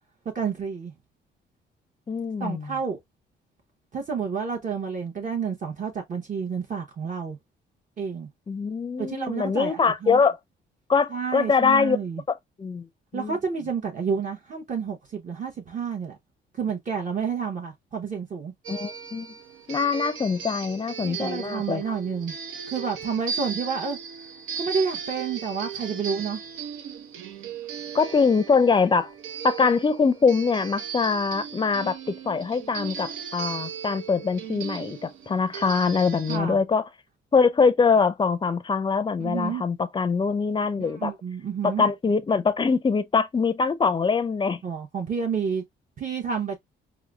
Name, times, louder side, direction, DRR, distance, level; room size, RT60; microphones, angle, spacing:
voice 1, 0.3-0.9 2.4-3.0 3.9-7.4 8.0-8.3 9.0-10.2 11.1-12.2 13.1-16.2 16.6-18.5 21.0-22.3 22.7-24.0 24.6-26.4 36.3-36.6 39.2-39.6 40.8-41.8 44.6-45.6 46.0-46.6, right 6 dB, 40° right, 0.9 m, -30 dB
voice 2, 2.1-2.7 8.5-10.4 10.9-12.0 12.6-12.9 13.1-13.4 18.7-19.3 19.7-21.8 27.9-29.1 29.4-36.8 37.3-41.1 41.6-44.6, left 5 dB, 25° left, 0.5 m, -23 dB
sound 1, 18.6-36.4, right 6 dB, 85° right, 0.7 m, -37 dB
4.8 x 2.0 x 2.2 m
cardioid pair, 90°, 20 cm